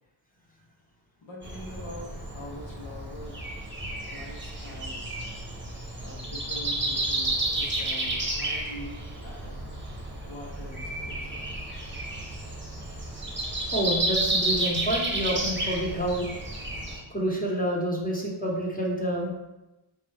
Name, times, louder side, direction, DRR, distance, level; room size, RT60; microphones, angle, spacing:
voice 1, 1.2-3.4 4.1-5.2 6.0-9.7 10.2-11.5, left 1 dB, 70° left, -4 dB, 1.2 m, -44 dB
Breathing, 1.4-17.0, right 2 dB, 25° right, 1.0 m, -31 dB
voice 2, 13.7-16.3 17.1-19.3, right 1 dB, 15° left, -3 dB, 1.1 m, -28 dB
4.4 x 2.7 x 3.5 m, 0.98 s
cardioid pair, 65°, 48 cm